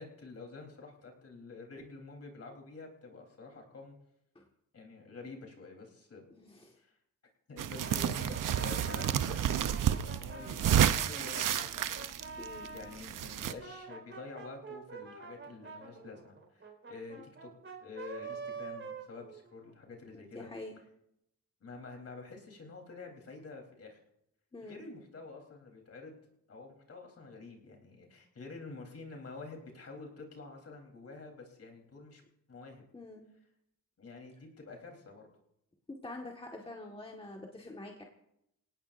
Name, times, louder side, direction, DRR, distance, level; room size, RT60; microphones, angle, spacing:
voice 1, 0.0-3.9 4.7-6.3 6.8-6.9 7.5-10.7 11.0-17.5 17.8-20.5 21.6-24.0 24.6-26.2 26.5-32.2 32.5-32.8 34.0-35.3, left 3 dB, 45° left, 1 dB, 3.8 m, -48 dB
voice 2, 6.4-6.7 12.4-12.7 20.1-20.7 24.5-24.8 32.9-33.3 35.9-38.0, left 2 dB, 15° left, 0 dB, 1.7 m, -46 dB
sound 1, 7.6-13.5, right 10 dB, 70° right, 0.8 m, -30 dB
Brass instrument, 7.8-13.0 13.4-19.8, right 4 dB, 40° right, 4.6 m, -46 dB
28.0 x 18.0 x 2.6 m, 0.79 s
wide cardioid pair, 120°, 33 cm